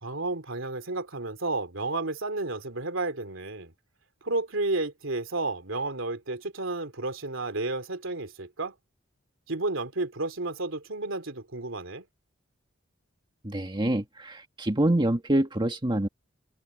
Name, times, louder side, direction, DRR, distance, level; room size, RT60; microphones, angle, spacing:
voice 1, 0.0-3.7 4.2-8.7 9.5-12.0, right 2 dB, 75° right, 3.0 m, -32 dB
voice 2, 13.4-16.1, right 1 dB, 25° right, 1.8 m, -26 dB
open air
head